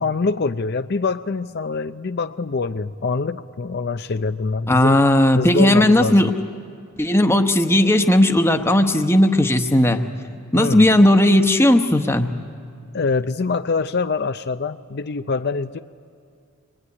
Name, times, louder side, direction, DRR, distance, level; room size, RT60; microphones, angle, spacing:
voice 1, 0.0-5.0 5.4-6.3 10.5-10.9 12.9-15.8, left 4 dB, 55° left, 10 dB, 0.6 m, -24 dB
voice 2, 4.7-6.3 7.0-10.0 10.5-12.3, left 1 dB, 15° left, 6 dB, 1.2 m, -16 dB
26.5 x 22.5 x 9.7 m, 2.4 s
head